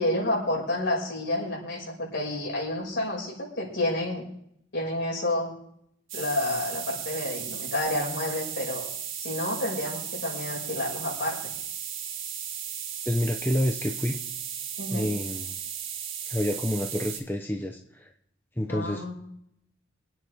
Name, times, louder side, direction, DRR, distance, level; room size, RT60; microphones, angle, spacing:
voice 1, 0.0-4.2 4.7-5.6 6.1-8.8 9.2-11.5 14.8-15.1 18.7-19.1, left 1 dB, 60° left, -2 dB, 6.2 m, -29 dB
sound 1, 6.1-17.2, right 8 dB, 80° right, 2.0 m, -35 dB
voice 2, 13.1-14.2 14.9-15.5 16.3-18.1 18.6-19.0, left 1 dB, 10° left, 2 dB, 0.9 m, -28 dB
24.5 x 9.5 x 3.6 m, 0.71 s
head